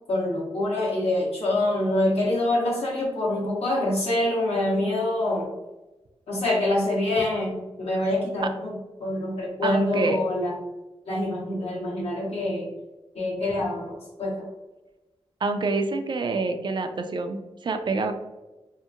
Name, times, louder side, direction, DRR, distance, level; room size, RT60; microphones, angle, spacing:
voice 1, 0.1-5.5 6.3-8.7 9.0-10.5 11.1-12.7 13.1-14.5, left 1 dB, 75° left, -4 dB, 1.1 m, -25 dB
voice 2, 9.6-10.2 15.4-18.1, right 3 dB, 50° right, 6 dB, 0.3 m, -27 dB
2.8 x 2.5 x 2.4 m, 1.1 s
wide cardioid pair, 85°, 11 cm